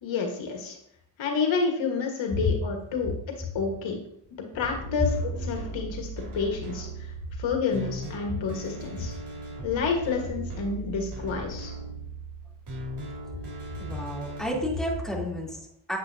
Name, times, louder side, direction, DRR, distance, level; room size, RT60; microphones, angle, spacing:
voice 1, 0.0-0.8 1.2-3.1 3.5-4.0 4.5-7.1 7.4-9.1 9.6-11.7, left 5 dB, 90° left, 2 dB, 1.6 m, -29 dB
sound 1, 4.6-14.5, right 2 dB, 60° right, 3.5 m, -38 dB
voice 2, 13.8-16.0, equal, ahead, -4 dB, 3.1 m, -31 dB
8.9 x 8.1 x 2.8 m, 0.71 s
cardioid pair, 115°, 44 cm